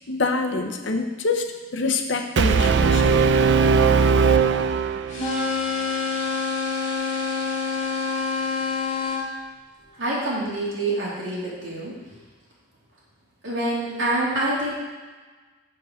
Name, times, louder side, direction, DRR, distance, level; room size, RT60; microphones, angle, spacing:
voice 1, 0.1-1.4 1.7-3.2, left 3 dB, 65° left, 4 dB, 0.8 m, -25 dB
Brass instrument, 2.4-5.4, right 5 dB, 65° right, 0.4 m, -19 dB
sound 1, 5.1-9.2, left 4 dB, 40° left, 2.0 m, -26 dB
voice 2, 10.0-11.9 13.4-14.7, right 2 dB, 80° right, -6 dB, 2.8 m, -26 dB
7.6 x 5.3 x 6.3 m, 1.3 s
head